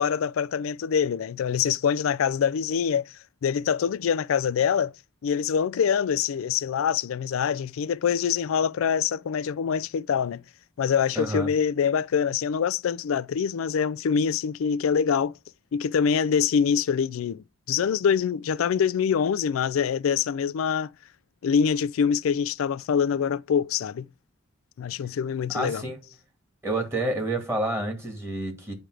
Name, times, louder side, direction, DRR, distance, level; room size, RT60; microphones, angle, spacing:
voice 1, 0.0-3.1 3.4-4.9 5.2-10.4 10.8-15.3 15.7-20.9 21.4-24.1 24.8-25.8, left 7 dB, 75° left, 0.3 m, -25 dB
voice 2, 11.2-11.5 25.5-26.0 26.6-28.7, right 1 dB, 15° right, 2.2 m, -29 dB
8.9 x 3.4 x 4.8 m
head